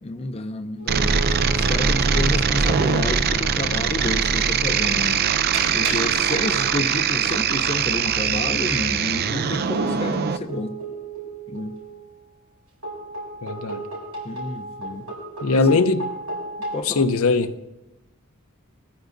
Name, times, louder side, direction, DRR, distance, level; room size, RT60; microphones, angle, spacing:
voice 1, 0.0-5.2 5.7-10.8 11.5-11.7 14.2-15.1 15.5-15.8 16.7-17.1, left 2 dB, 25° left, 0.5 m, -30 dB
sound 1, 0.8-2.3 2.7-3.0 4.7-4.8 5.5-6.9 7.3-7.4 8.7-8.9 9.7-12.1 12.8-16.8, right 2 dB, 90° right, 5.3 m, -34 dB
sound 2, 0.9-10.4, right 6 dB, 45° right, 0.4 m, -22 dB
voice 2, 13.4-13.8 15.4-16.1 16.8-17.6, left 3 dB, 70° left, 0.6 m, -20 dB
20.5 x 14.5 x 2.6 m
head